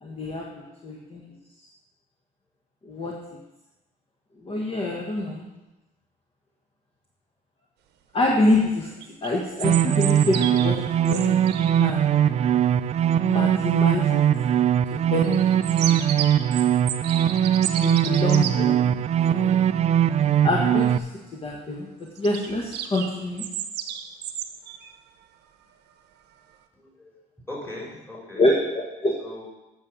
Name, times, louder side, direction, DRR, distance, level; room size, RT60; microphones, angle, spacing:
voice 1, 0.0-0.5 0.8-1.2 2.8-3.1 4.4-5.4 8.1-8.9 9.2-12.2 13.2-14.2 14.9-15.4 15.8-15.9 17.8-18.9 19.3-19.6 20.4-21.0 21.3-21.9 22.2-23.4 28.4-29.1, left 2 dB, 30° left, -1 dB, 1.4 m, -26 dB
sound 1, 9.0-11.9 15.2-18.5 22.2-24.9, right 10 dB, 80° right, 0.9 m, -33 dB
sound 2, 9.6-21.0, right 10 dB, 40° right, 0.4 m, -21 dB
voice 2, 26.7-27.2 27.5-28.4 29.2-29.4, left 1 dB, 15° left, -3 dB, 4.1 m, -39 dB
8.7 x 6.7 x 6.2 m, 1.0 s
cardioid pair, 110°, 17 cm